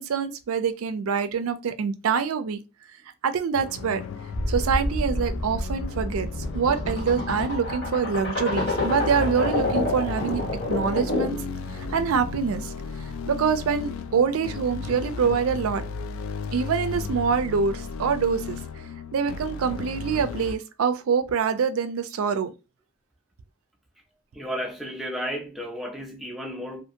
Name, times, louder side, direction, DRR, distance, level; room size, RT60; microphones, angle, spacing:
voice 1, 0.0-2.6 3.2-4.0 4.5-6.3 6.5-10.4 10.7-11.4 11.9-12.7 13.3-15.8 16.5-18.6 19.1-22.5, right 6 dB, 90° right, 0.4 m, -25 dB
sound 1, 3.5-20.6, left 5 dB, 75° left, 0.3 m, -35 dB
sound 2, 4.3-11.5, left 1 dB, 55° left, 0.8 m, -28 dB
sound 3, 8.7-16.4, right 1 dB, 25° right, 0.8 m, -44 dB
voice 2, 24.3-26.8, equal, ahead, 0.4 m, -33 dB
2.7 x 2.5 x 2.5 m
head